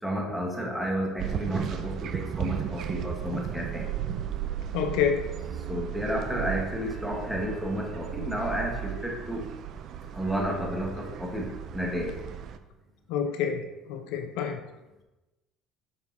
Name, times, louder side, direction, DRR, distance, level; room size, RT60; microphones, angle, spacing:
voice 1, 0.0-3.9 5.6-9.5 10.1-12.2, equal, ahead, -1 dB, 1.4 m, -31 dB
sound 1, 1.2-12.6, right 9 dB, 55° right, 0.5 m, -35 dB
voice 2, 4.7-5.2 13.1-14.6, left 7 dB, 75° left, 6 dB, 0.8 m, -28 dB
6.8 x 6.4 x 2.8 m, 1.0 s
supercardioid pair, 105°, 0 cm